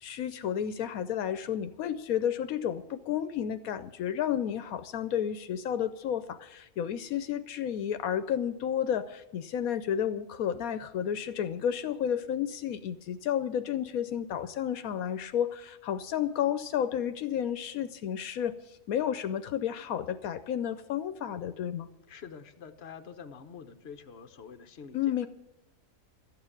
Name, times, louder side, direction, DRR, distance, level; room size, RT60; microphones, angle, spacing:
voice 1, 0.0-21.9 24.9-25.3, left 9 dB, 80° left, 11 dB, 1.1 m, -31 dB
voice 2, 22.1-25.3, left 6 dB, 50° left, 7 dB, 1.2 m, -47 dB
13.0 x 9.0 x 8.8 m, 1.0 s
omnidirectional pair, 1.5 m